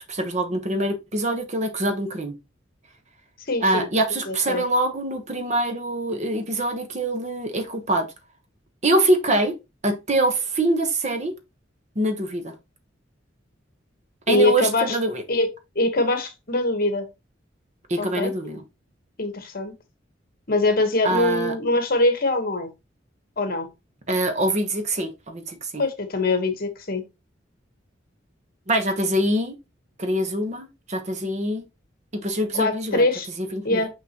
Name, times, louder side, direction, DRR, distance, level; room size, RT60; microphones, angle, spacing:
voice 1, 0.1-2.3 3.6-8.1 8.8-9.5 9.8-11.3 11.9-12.5 14.3-15.2 17.9-18.6 21.0-21.5 24.1-25.8 28.7-29.5 30.0-31.6 32.1-33.1 33.4-33.8, right 1 dB, 40° right, 1.1 m, -24 dB
voice 2, 3.5-3.9 4.3-4.6 14.3-15.0 15.3-15.5 15.7-17.1 18.0-18.3 19.2-19.7 20.5-22.7 23.4-23.7 25.8-27.0 32.5-33.3 33.6-33.9, left 2 dB, 50° left, 1.3 m, -23 dB
6.0 x 5.9 x 3.0 m
head